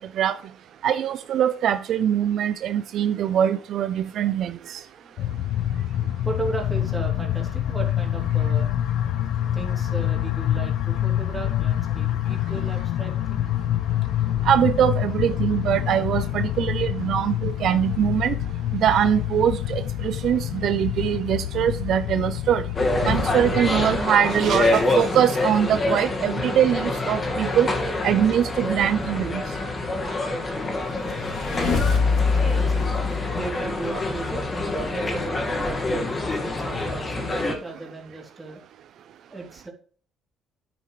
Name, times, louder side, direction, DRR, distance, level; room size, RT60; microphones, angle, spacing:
voice 1, 0.8-4.8 14.5-18.3 18.7-22.6 23.0-27.7 28.0-29.4, right 9 dB, 55° right, 0.5 m, -22 dB
voice 2, 5.0-5.3 6.2-9.1 9.5-13.6 32.3-34.4 34.9-38.6 39.3-39.7, right 3 dB, 10° right, 3.0 m, -36 dB
sound 1, 5.2-24.0, left 12 dB, 75° left, 0.5 m, -26 dB
sound 2, 22.8-37.6, left 2 dB, 25° left, 1.8 m, -26 dB
sound 3, 30.6-34.2, left 4 dB, 55° left, 2.7 m, -24 dB
9.6 x 9.2 x 3.2 m
cardioid pair, 145°, 0 cm